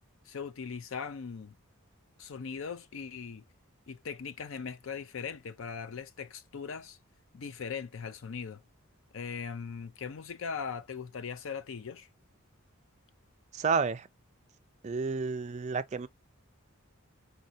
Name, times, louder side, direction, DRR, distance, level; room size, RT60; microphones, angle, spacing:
voice 1, 0.3-1.5 2.2-3.4 3.9-7.0 7.3-8.6 9.1-12.1, left 6 dB, 60° left, 0.5 m, -39 dB
voice 2, 13.5-14.1 14.8-16.1, right 5 dB, 30° right, 0.3 m, -30 dB
4.4 x 2.8 x 2.7 m
head